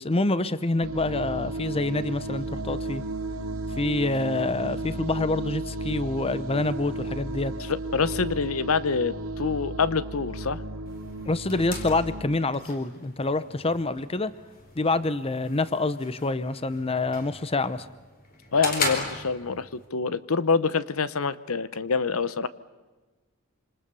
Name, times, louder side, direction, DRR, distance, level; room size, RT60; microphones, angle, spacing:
voice 1, 0.0-3.0 3.8-7.5 11.2-14.3 14.8-17.9, left 2 dB, 25° left, 15 dB, 0.8 m, -27 dB
sound 1, 0.8-12.2, right 2 dB, 70° right, 2.7 m, -34 dB
voice 2, 7.7-10.6 18.5-22.5, left 5 dB, 70° left, 16 dB, 0.9 m, -26 dB
sound 2, 10.9-19.9, left 3 dB, 40° left, 4.5 m, -37 dB
27.0 x 26.0 x 6.9 m, 1.3 s
head